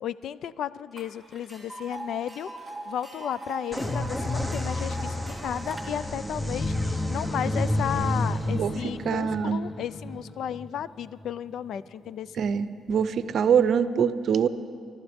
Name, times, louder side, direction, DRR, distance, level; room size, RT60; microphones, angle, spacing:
voice 1, 0.0-2.5 2.9-12.3, left 9 dB, 70° left, 17 dB, 0.4 m, -34 dB
Tick, 1.0-1.1 1.3-5.8, right 2 dB, 15° right, 3.0 m, -41 dB
sound 1, 3.7-11.3, left 1 dB, 10° left, 0.9 m, -30 dB
voice 2, 8.5-9.6 12.3-14.5, right 7 dB, 60° right, 13 dB, 0.6 m, -24 dB
24.0 x 12.0 x 3.5 m, 2.3 s
cardioid pair, 90°, 0 cm